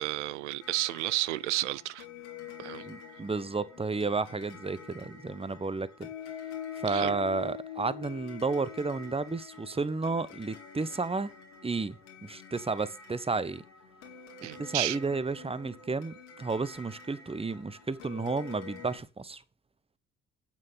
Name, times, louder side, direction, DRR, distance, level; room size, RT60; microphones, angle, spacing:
voice 1, 0.0-2.1 2.6-2.9 6.9-7.2 14.4-15.0, right 17 dB, 90° right, 0.5 m, -32 dB
sound 1, 0.6-19.0, left 7 dB, 85° left, 2.7 m, -46 dB
voice 2, 2.8-6.1 6.8-11.3 11.6-13.6 14.6-19.4, right 4 dB, 15° right, 1.0 m, -32 dB
8.8 x 7.3 x 5.4 m
hypercardioid pair, 50°, 34 cm